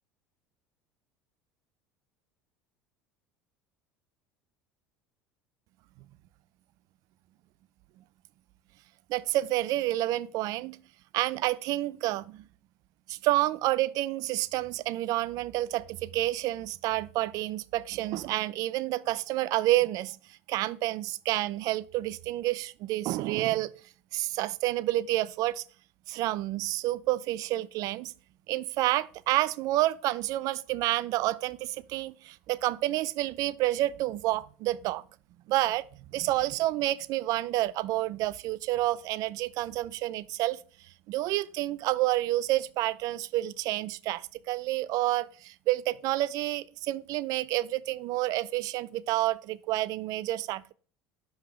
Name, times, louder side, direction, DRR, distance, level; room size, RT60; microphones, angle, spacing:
voice 1, 9.1-10.8 11.1-12.4 13.1-20.2 20.5-23.7 24.1-25.6 26.1-28.1 28.5-35.0 35.5-35.8 36.1-40.6 41.1-50.7, right 16 dB, 60° right, 0.5 m, -29 dB
6.6 x 5.7 x 3.3 m
hypercardioid pair, 85°, 7 cm